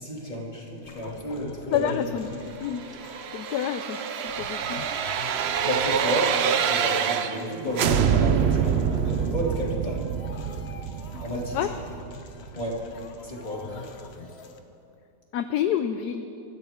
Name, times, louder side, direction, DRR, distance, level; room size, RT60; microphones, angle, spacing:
voice 1, 0.0-2.1 5.6-10.0 11.2-11.6 12.5-12.8 13.2-13.7, equal, 25° left, -3 dB, 2.8 m, -31 dB
sound 1, 0.8-14.6, left 4 dB, 45° left, 1.0 m, -45 dB
voice 2, 1.7-2.3 2.6-2.8 3.3-4.8 11.5-11.7 15.3-16.3, left 10 dB, 70° left, 9 dB, 1.0 m, -28 dB
sound 2, 2.7-7.5 7.8-12.6 13.0-13.1, right 8 dB, 85° right, 0.5 m, -26 dB
25.0 x 13.5 x 3.6 m, 2.7 s
omnidirectional pair, 1.9 m